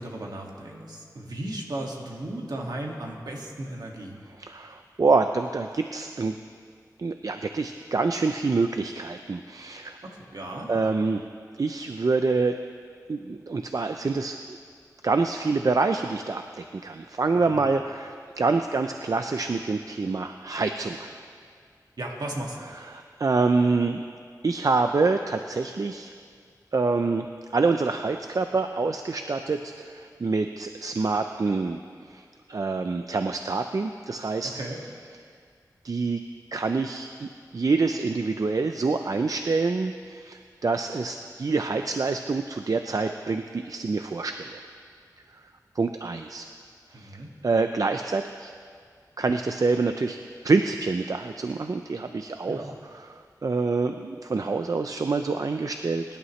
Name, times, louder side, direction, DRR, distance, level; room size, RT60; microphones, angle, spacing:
voice 1, 0.0-4.2 10.0-10.9 17.4-17.6 22.0-22.7 34.5-34.8 46.9-47.3 52.5-52.7, right 1 dB, 75° right, -1 dB, 2.0 m, -36 dB
voice 2, 4.4-6.4 7.0-10.0 10.7-11.2 11.6-12.5 13.1-14.6 15.0-21.1 22.7-24.0 24.4-26.1 26.7-27.3 27.5-31.8 32.1-32.2 32.5-34.5 35.8-36.2 36.5-44.6 45.8-46.5 47.0-47.1 47.4-48.5 49.2-50.2 50.4-56.0, right 3 dB, 60° right, 7 dB, 0.5 m, -26 dB
23.5 x 11.5 x 3.2 m, 2.1 s
wide cardioid pair, 75°, 7 cm